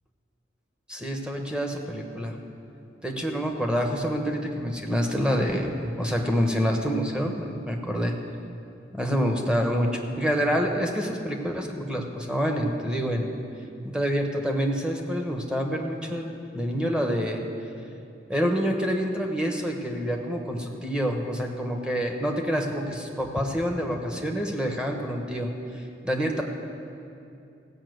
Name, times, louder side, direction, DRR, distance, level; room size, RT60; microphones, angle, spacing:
voice 1, 0.9-2.4 3.0-8.1 8.9-13.3 13.8-17.4 18.3-26.4, equal, 5° right, 2 dB, 1.1 m, -27 dB
16.0 x 5.6 x 7.9 m, 2.6 s
head